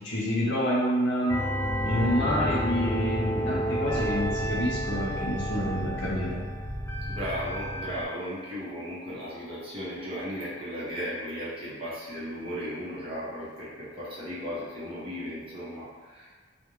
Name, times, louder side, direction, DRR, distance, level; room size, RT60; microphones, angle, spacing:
voice 1, 0.0-1.4 1.8-6.4, equal, 65° left, -5 dB, 0.7 m, -28 dB
sound 1, 1.3-8.0, equal, 15° left, 0.3 m, -30 dB
voice 2, 7.0-16.3, equal, 30° right, -9 dB, 0.8 m, -36 dB
2.4 x 2.2 x 3.1 m, 1.5 s
head